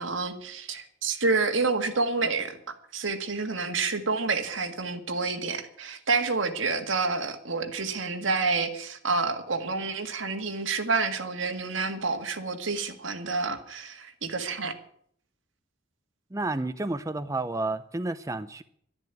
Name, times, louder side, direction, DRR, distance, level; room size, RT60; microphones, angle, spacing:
voice 1, 0.0-2.6 2.9-14.7, right 4 dB, 85° right, 6 dB, 1.9 m, -28 dB
voice 2, 16.3-18.6, right 2 dB, 15° right, 11 dB, 0.5 m, -31 dB
12.0 x 10.5 x 9.3 m, 0.65 s
head